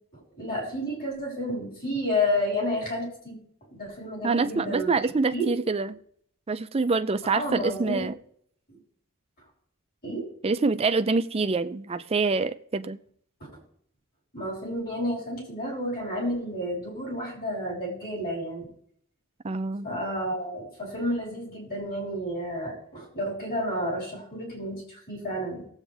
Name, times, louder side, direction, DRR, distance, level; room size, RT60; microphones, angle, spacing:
voice 1, 0.1-3.4 3.7-5.0 5.3-5.5 7.3-8.0 10.0-10.3 14.3-18.7 19.8-25.7, left 1 dB, 45° left, 5.6 m, -31 dB
voice 2, 4.2-6.0 6.5-8.1 10.4-13.0 19.4-19.9, right 3 dB, 25° right, 0.5 m, -26 dB
19.0 x 8.1 x 3.4 m
head